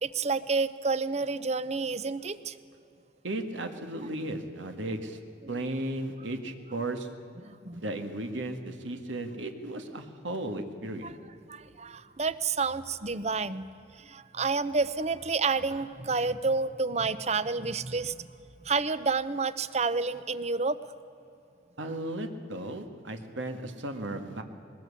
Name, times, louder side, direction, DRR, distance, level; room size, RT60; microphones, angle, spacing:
voice 1, 0.0-2.5 7.4-7.8 11.5-13.7 14.0-18.3 18.6-20.8, right 4 dB, 35° right, 15 dB, 0.7 m, -29 dB
voice 2, 3.2-5.2 5.5-7.1 7.7-11.2 21.8-24.4, right 1 dB, 80° right, 6 dB, 1.8 m, -35 dB
22.0 x 20.0 x 8.5 m, 2.8 s
head